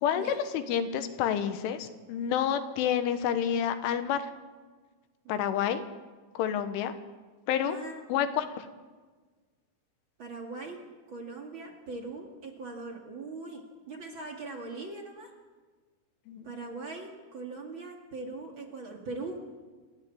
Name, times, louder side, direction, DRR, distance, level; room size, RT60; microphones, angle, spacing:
voice 1, 0.0-4.3 5.3-5.8 6.4-6.9 7.5-7.8 8.1-8.7 16.3-16.5, left 9 dB, 80° left, 9 dB, 3.7 m, -29 dB
voice 2, 5.2-5.7 7.6-8.0 10.2-10.8 11.1-15.3 16.4-19.6, right 3 dB, 45° right, 1 dB, 1.6 m, -41 dB
28.5 x 13.0 x 8.5 m, 1.4 s
omnidirectional pair, 5.6 m